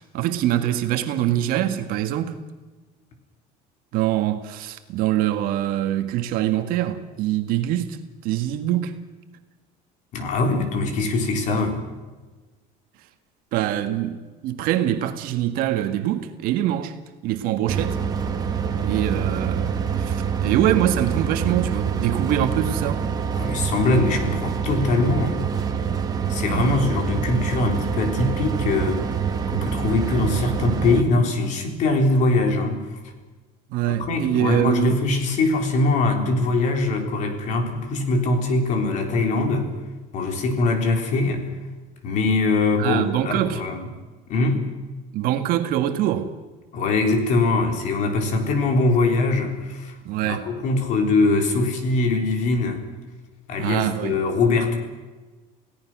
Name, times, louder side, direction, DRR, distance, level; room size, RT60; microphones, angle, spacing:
voice 1, 0.0-2.4 3.9-8.0 8.2-8.9 13.5-17.0 17.2-18.0 18.8-23.0 26.5-26.8 33.7-35.0 42.8-43.6 45.1-46.3 50.1-50.5 53.6-54.2, right 12 dB, 60° right, 1.8 m, -24 dB
voice 2, 10.1-11.8 23.3-25.4 26.3-29.1 29.5-33.0 33.9-39.7 40.1-41.5 42.0-43.9 44.3-44.7 46.7-50.0 50.2-52.8 53.5-54.8, left 3 dB, 45° left, 3.8 m, -22 dB
sound 1, 17.7-31.0, right 6 dB, 20° right, 2.1 m, -26 dB
28.5 x 17.0 x 6.2 m
cardioid pair, 170°, 17 cm